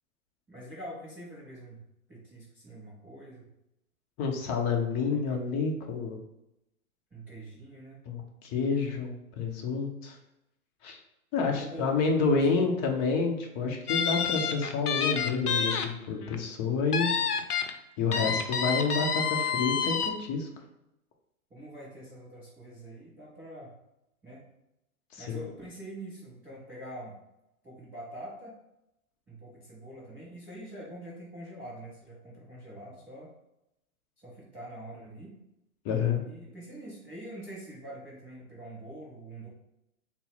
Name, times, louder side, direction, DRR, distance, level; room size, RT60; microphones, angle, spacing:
voice 1, 0.5-1.8 2.1-3.5 5.1-5.4 7.1-8.0 11.5-12.7 18.1-18.8 21.5-23.7 24.2-24.4 25.2-27.2 27.6-28.5 29.3-33.3 34.2-35.4 36.2-39.5, right 1 dB, 5° right, -11 dB, 0.3 m, -45 dB
voice 2, 4.2-6.2 8.1-9.1 9.4-10.2 10.8-11.0 11.3-17.1 18.0-20.5 25.1-25.4 35.8-36.2, left 4 dB, 25° left, 2 dB, 0.7 m, -29 dB
sound 1, 13.9-15.9 16.2-16.3 16.9-17.7 18.1-20.1, left 6 dB, 90° left, 0.7 m, -28 dB
4.0 x 2.1 x 3.9 m, 0.86 s
hypercardioid pair, 120°, 44 cm